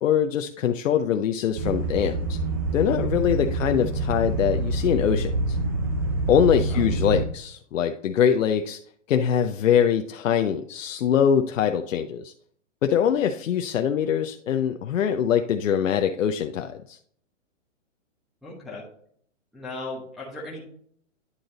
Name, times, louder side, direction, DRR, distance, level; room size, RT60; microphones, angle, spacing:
voice 1, 0.0-2.4 2.7-5.6 6.3-8.8 9.1-12.3 12.8-17.0, left 8 dB, 85° left, 6 dB, 0.6 m, -23 dB
sound 1, 1.6-7.2, right 2 dB, 20° right, 0.4 m, -26 dB
voice 2, 18.4-18.8 19.5-20.7, left 2 dB, ahead, -8 dB, 1.1 m, -37 dB
9.8 x 3.9 x 3.9 m, 0.63 s
hypercardioid pair, 155°, 38 cm